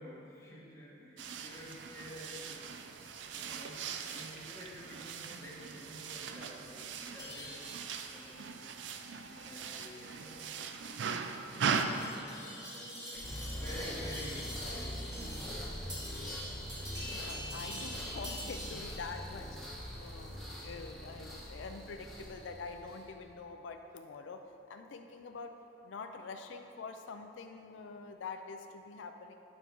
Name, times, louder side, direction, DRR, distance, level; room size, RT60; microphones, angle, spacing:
voice 1, 0.0-2.6 3.0-3.8 4.1-8.7 9.0-10.4 11.3-13.3 13.5-15.7, equal, 15° left, -6 dB, 1.4 m, -50 dB
sound 1, 1.2-11.8, right 6 dB, 70° right, 0.4 m, -40 dB
sound 2, 7.2-19.0, equal, 25° right, 1.5 m, -47 dB
sound 3, 13.1-23.1, equal, ahead, 1.4 m, -43 dB
voice 2, 17.1-19.5 20.0-24.4 24.7-25.5 25.8-29.3, left 4 dB, 85° left, 6 dB, 0.4 m, -45 dB
8.0 x 5.3 x 4.5 m, 2.9 s
head